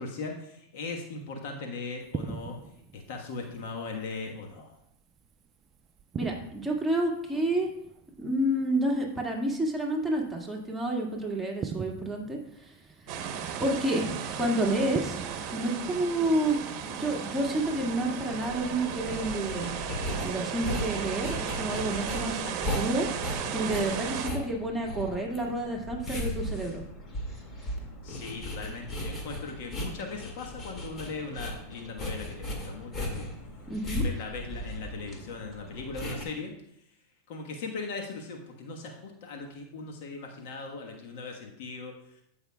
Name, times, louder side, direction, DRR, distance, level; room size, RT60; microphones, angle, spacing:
voice 1, 0.0-2.6 2.9-4.8 13.1-13.3 23.4-23.7 28.0-33.3 34.0-36.8 37.3-42.2, left 4 dB, 65° left, 2 dB, 1.3 m, -39 dB
sound 1, 2.0-19.6, right 6 dB, 30° right, 0.5 m, -45 dB
voice 2, 6.2-7.7 8.2-12.7 13.6-15.2 15.5-19.7 20.2-23.1 23.5-26.8 33.7-34.0, right 1 dB, 5° right, -2 dB, 1.9 m, -29 dB
sound 2, 13.1-24.3, right 8 dB, 50° right, 0.9 m, -35 dB
sound 3, 17.6-36.2, left 1 dB, 30° left, 2.1 m, -37 dB
15.0 x 5.6 x 2.3 m, 0.76 s
hypercardioid pair, 100°, 0 cm